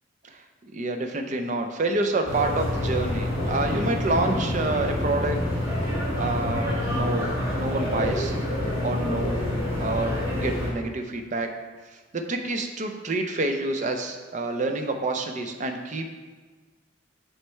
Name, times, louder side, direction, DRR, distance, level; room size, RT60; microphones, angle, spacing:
voice 1, 0.2-5.4 6.2-8.3 8.8-9.4 9.8-11.5 11.9-16.1, right 2 dB, 40° right, 5 dB, 0.5 m, -28 dB
sound 1, 2.2-10.7, left 1 dB, 15° right, 1.7 m, -27 dB
7.6 x 3.2 x 4.4 m, 1.4 s
head